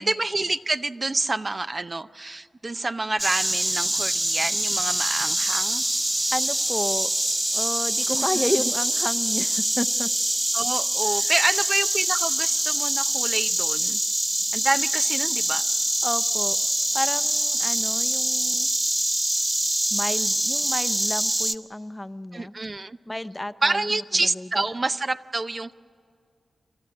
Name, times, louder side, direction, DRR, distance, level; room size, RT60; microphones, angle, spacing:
voice 1, 0.0-5.8 8.1-8.3 10.5-14.0 14.5-15.6 22.3-23.0 23.6-25.7, right 2 dB, 45° right, 10 dB, 0.6 m, -27 dB
Insect, 3.2-21.6, right 1 dB, 25° right, 0.9 m, -24 dB
voice 2, 6.3-7.1 7.5-10.1 11.0-11.3 16.0-16.6 16.9-18.7 19.9-22.5 23.1-24.6, left 1 dB, 20° left, 12 dB, 0.7 m, -31 dB
29.0 x 13.0 x 9.8 m, 2.2 s
cardioid pair, 40°, 0 cm